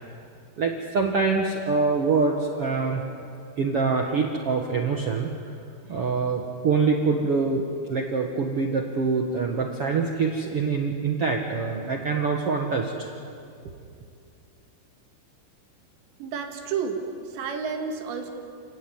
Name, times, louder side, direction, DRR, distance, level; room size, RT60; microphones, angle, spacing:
voice 1, 0.6-3.0 3.6-5.3 5.9-7.6 7.9-13.1, right 4 dB, 70° right, 1 dB, 1.3 m, -25 dB
voice 2, 16.2-18.3, right 6 dB, 85° right, 3 dB, 4.2 m, -31 dB
29.5 x 16.0 x 9.4 m, 2.5 s
omnidirectional pair, 4.9 m